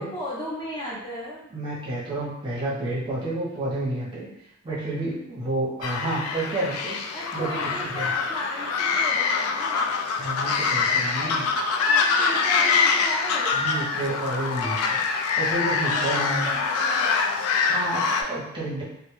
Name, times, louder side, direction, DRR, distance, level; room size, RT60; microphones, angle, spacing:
voice 1, 0.0-1.5 7.1-9.9 11.9-13.6 15.8-17.4, equal, 20° left, -7 dB, 0.6 m, -36 dB
voice 2, 1.5-4.3 4.6-8.1 10.2-11.5 13.5-15.0 15.4-16.5 17.2-18.8, right 2 dB, 20° right, -7 dB, 0.6 m, -30 dB
sound 1, 5.8-18.2, left 5 dB, 75° left, 0.3 m, -24 dB
2.1 x 2.0 x 2.9 m, 0.77 s
head